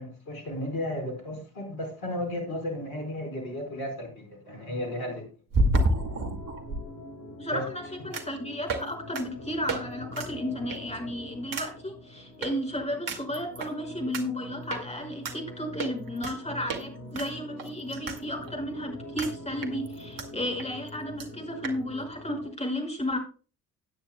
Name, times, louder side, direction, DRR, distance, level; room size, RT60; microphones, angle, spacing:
voice 1, 0.0-5.2 7.5-7.6, left 1 dB, 70° left, 3 dB, 4.9 m, -34 dB
sound 1, 3.0-3.1 5.5-6.8 8.1-8.4 8.7-8.9 9.1-9.2 9.7-9.8 10.1-10.3 10.7-11.0 11.5-11.7 12.4-12.5 13.1-13.7 14.1-14.2 14.7-14.8 15.2-15.4 15.8-16.4 16.7-16.8 17.1-18.2 18.5-18.6 19.2-19.3 19.6-20.3 20.6-20.7 20.9-21.0 21.2-21.3 21.6-21.8, right 1 dB, 45° right, 2.2 m, -29 dB
sound 2, 5.7-22.5, left 1 dB, 45° left, 4.9 m, -44 dB
voice 2, 7.4-23.2, left 1 dB, 15° left, 2 dB, 5.7 m, -33 dB
18.0 x 9.3 x 2.2 m, 0.35 s
figure-of-eight pair, 50°, 44 cm